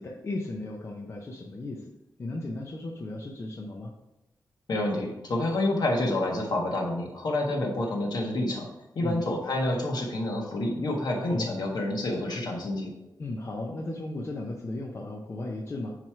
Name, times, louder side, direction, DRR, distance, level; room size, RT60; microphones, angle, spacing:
voice 1, 0.0-1.9 2.2-3.9 9.0-9.2 11.2-11.6 13.2-16.0, left 2 dB, 35° left, 0 dB, 0.7 m, -35 dB
voice 2, 4.7-8.7 8.9-12.9, left 1 dB, 65° left, 0 dB, 1.5 m, -28 dB
9.6 x 3.2 x 4.6 m, 0.91 s
wide cardioid pair, 165°, 7 cm